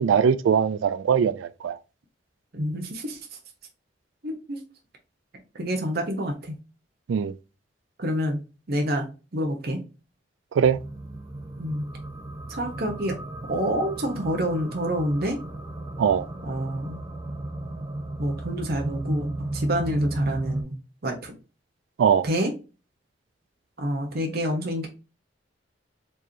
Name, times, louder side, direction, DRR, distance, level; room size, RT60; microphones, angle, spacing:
voice 1, 0.0-1.8 7.1-7.3 10.6-10.8 16.0-16.3 22.0-22.2, right 7 dB, 75° right, 0.3 m, -21 dB
voice 2, 2.5-3.2 4.2-4.6 5.5-6.5 8.0-8.4 8.7-9.1 9.3-9.8 11.6-11.8 12.5-13.1 13.5-15.4 16.4-17.0 18.2-20.8 21.0-21.3 22.2-22.5 23.8-24.9, equal, 55° right, 0.9 m, -27 dB
sound 1, 10.6-20.6, right 1 dB, 20° right, 0.7 m, -33 dB
4.5 x 3.1 x 2.7 m
head